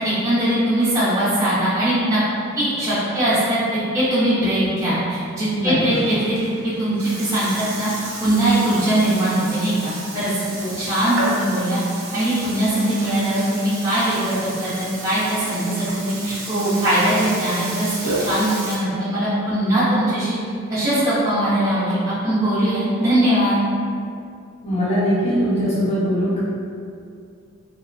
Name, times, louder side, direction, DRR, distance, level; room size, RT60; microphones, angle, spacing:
voice 1, 0.0-2.2 2.6-6.4 6.6-7.9 8.2-10.3 10.8-11.8 12.1-17.9 18.2-20.3 20.7-23.6, right 1 dB, 15° right, -13 dB, 0.7 m, -21 dB
Burping eructation, 5.6-18.8, right 2 dB, 70° right, 0.6 m, -32 dB
voice 2, 24.6-26.4, equal, 30° left, -10 dB, 0.8 m, -21 dB
3.0 x 2.0 x 2.5 m, 2.3 s
head